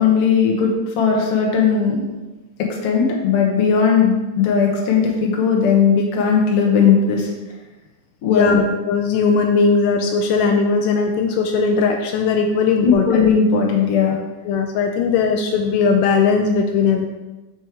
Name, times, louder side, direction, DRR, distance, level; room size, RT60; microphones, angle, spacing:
voice 1, 0.0-2.0 2.6-7.3 8.2-8.6 12.8-14.2, left 6 dB, 60° left, -1 dB, 1.7 m, -17 dB
voice 2, 8.3-13.1 14.5-17.1, left 5 dB, 80° left, 4 dB, 2.1 m, -18 dB
6.4 x 4.8 x 4.5 m, 1.1 s
omnidirectional pair, 3.8 m